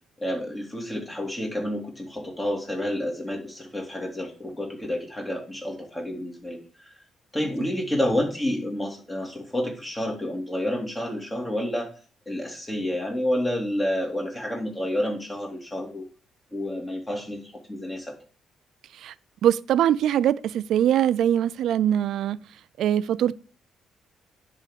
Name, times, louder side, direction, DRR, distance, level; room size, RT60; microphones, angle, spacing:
voice 1, 0.2-6.9 7.3-11.9 12.3-16.0 16.5-17.4 17.7-18.1, left 1 dB, 20° left, 2.6 m, -29 dB
voice 2, 19.4-22.4 22.8-23.4, right 10 dB, 75° right, 0.4 m, -22 dB
9.9 x 3.7 x 6.5 m
cardioid pair, 90°, 0 cm